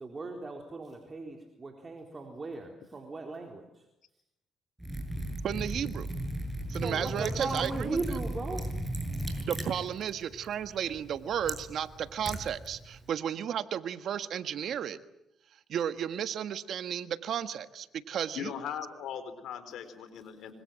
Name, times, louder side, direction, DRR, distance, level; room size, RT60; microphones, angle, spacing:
voice 1, 0.0-3.9 6.8-8.7, right 3 dB, 30° right, 2 dB, 4.0 m, -37 dB
Liquid, 4.8-13.1, right 1 dB, 10° right, 7.1 m, -37 dB
voice 2, 5.4-6.1 6.7-8.0 9.5-15.0 15.7-18.5, right 9 dB, 65° right, 11 dB, 1.4 m, -33 dB
voice 3, 18.3-20.5, left 8 dB, 80° left, 11 dB, 4.5 m, -39 dB
26.0 x 25.5 x 7.6 m, 0.84 s
cardioid pair, 90°, 0 cm